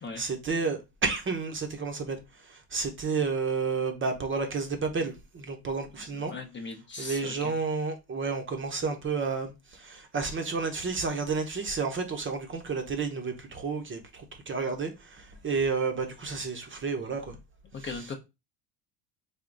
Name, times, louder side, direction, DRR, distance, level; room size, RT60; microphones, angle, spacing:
voice 1, 0.2-2.2 2.5-6.3 7.0-17.4, right 4 dB, 25° right, 0.8 m, -31 dB
voice 2, 6.1-7.5 17.7-18.2, left 4 dB, 25° left, 0.7 m, -39 dB
3.5 x 2.3 x 3.9 m
supercardioid pair, 95°, 46 cm